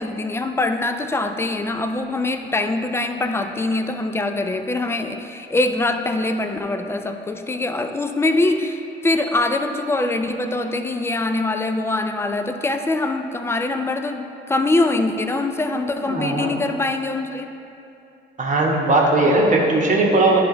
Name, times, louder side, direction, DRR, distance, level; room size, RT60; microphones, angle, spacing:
voice 1, 0.0-17.5, left 2 dB, 10° left, 7 dB, 0.4 m, -23 dB
voice 2, 16.0-16.6 18.4-20.4, right 2 dB, 40° right, -2 dB, 1.1 m, -18 dB
10.5 x 3.5 x 3.9 m, 2.7 s
cardioid pair, 90°, 20 cm